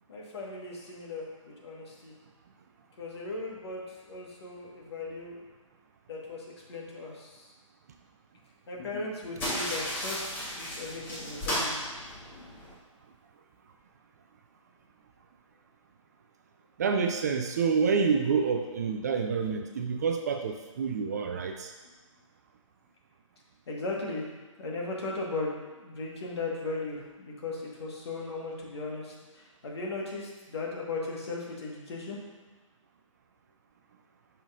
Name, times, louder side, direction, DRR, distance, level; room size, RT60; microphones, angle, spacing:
voice 1, 0.1-2.1 3.0-5.4 6.1-7.5 8.7-11.8 12.2-12.4 23.7-24.3 24.6-32.2, left 3 dB, 50° left, -2 dB, 1.6 m, -37 dB
sound 1, 9.4-12.7, left 1 dB, 10° left, 1.4 m, -34 dB
voice 2, 16.8-21.7, right 5 dB, 30° right, 5 dB, 0.4 m, -28 dB
8.4 x 5.6 x 2.6 m, 1.2 s
figure-of-eight pair, 135°, 17 cm